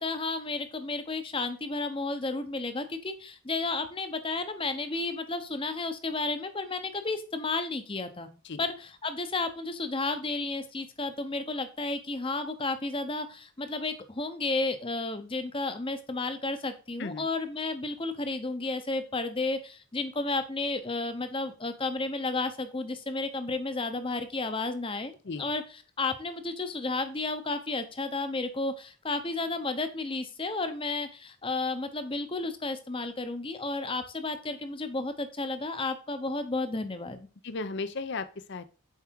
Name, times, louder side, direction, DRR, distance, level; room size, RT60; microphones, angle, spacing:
voice 1, 0.0-8.3 8.6-25.1 25.4-37.3, left 3 dB, 25° left, 9 dB, 0.8 m, -32 dB
voice 2, 37.4-38.7, left 3 dB, 50° left, 12 dB, 0.6 m, -35 dB
7.3 x 4.7 x 4.6 m, 0.35 s
head